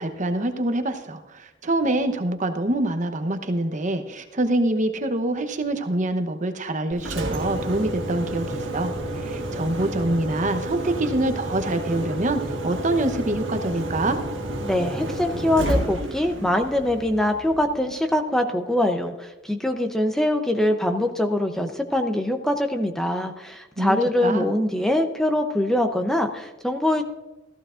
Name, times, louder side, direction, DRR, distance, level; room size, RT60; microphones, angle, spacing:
voice 1, 0.0-8.9 9.2-14.2 23.8-24.5, right 1 dB, 40° right, 8 dB, 0.9 m, -25 dB
Engine, 6.9-17.8, right 1 dB, 80° right, 1.7 m, -30 dB
voice 2, 14.6-27.1, left 1 dB, 5° left, 5 dB, 0.7 m, -23 dB
15.0 x 14.5 x 2.5 m, 1.1 s
head